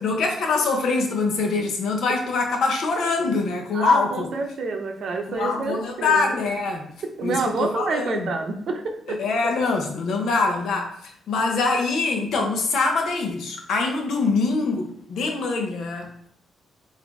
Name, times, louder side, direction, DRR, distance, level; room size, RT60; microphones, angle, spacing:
voice 1, 0.0-4.3 5.3-6.9 7.2-8.3 9.1-16.3, left 3 dB, 70° left, 2 dB, 0.9 m, -24 dB
voice 2, 3.7-6.4 7.0-9.2, right 3 dB, 50° right, 3 dB, 0.7 m, -28 dB
4.1 x 2.7 x 4.6 m, 0.68 s
cardioid pair, 160°, 0 cm